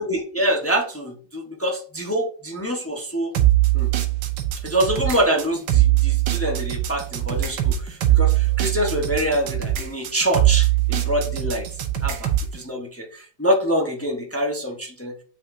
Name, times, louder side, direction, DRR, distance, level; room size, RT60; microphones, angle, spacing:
voice 1, 0.0-3.3 3.7-3.9 4.6-11.7 12.0-15.2, equal, 20° left, 0 dB, 0.4 m, -25 dB
sound 1, 3.3-12.6, right 14 dB, 70° right, 1.4 m, -21 dB
7.7 x 5.7 x 2.6 m, 0.43 s
omnidirectional pair, 2.1 m